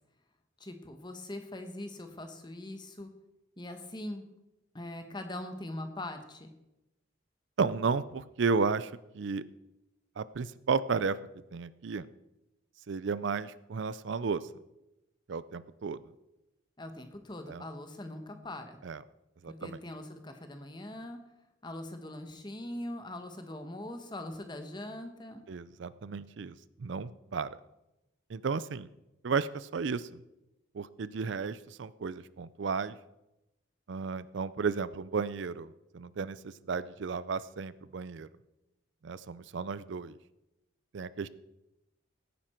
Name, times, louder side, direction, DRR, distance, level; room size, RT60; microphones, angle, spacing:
voice 1, 0.6-3.1 3.6-4.2 4.7-6.5 16.8-18.8 19.5-21.2 21.6-25.4, left 1 dB, 20° left, 6 dB, 1.2 m, -42 dB
voice 2, 7.6-9.4 10.2-11.2 11.5-12.1 12.9-14.4 15.3-16.0 17.5-17.6 18.8-19.0 19.4-19.8 25.5-27.5 28.3-28.9 29.2-30.2 30.7-32.9 33.9-38.3 39.0-40.2 40.9-41.3, right 5 dB, 65° right, 17 dB, 0.4 m, -33 dB
16.5 x 9.5 x 4.4 m, 0.93 s
head